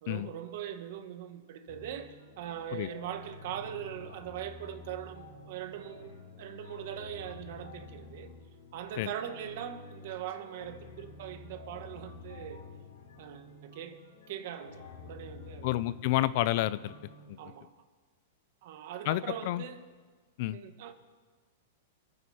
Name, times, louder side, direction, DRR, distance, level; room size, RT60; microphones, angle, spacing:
voice 1, 0.0-8.3 8.7-12.6 13.2-14.0 14.3-15.7 17.4-17.7 18.6-19.8 20.5-20.9, right 10 dB, 50° right, 1.3 m, -41 dB
sound 1, 1.7-17.3, left 4 dB, 85° left, 3.1 m, -50 dB
voice 2, 15.6-16.9 17.3-17.4 19.1-19.6 20.4-20.6, left 15 dB, 40° left, 0.4 m, -29 dB
27.0 x 9.2 x 4.3 m
supercardioid pair, 170°, 0 cm